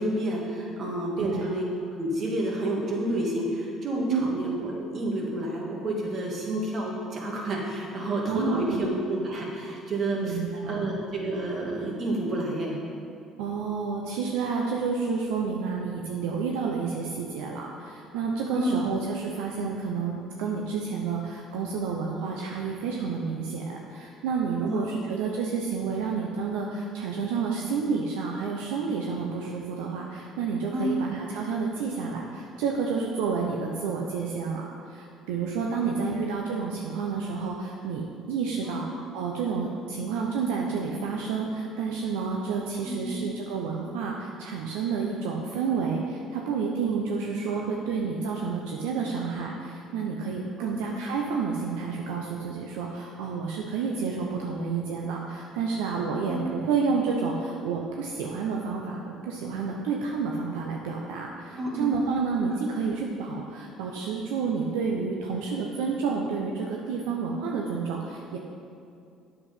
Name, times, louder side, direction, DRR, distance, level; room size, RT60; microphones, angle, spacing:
voice 1, 0.0-1.7 2.0-10.4 10.7-12.8 18.5-18.7 24.6-24.9 30.7-30.9 35.8-36.1 38.7-38.8 42.8-43.1 50.6-50.8 56.2-56.4 61.6-61.9, right 1 dB, 50° right, -2 dB, 2.3 m, -30 dB
voice 2, 8.3-8.9 10.2-10.9 13.4-38.8 39.1-68.4, right 5 dB, 80° right, 0 dB, 0.7 m, -30 dB
8.3 x 7.0 x 5.5 m, 2.4 s
supercardioid pair, 70°, 0 cm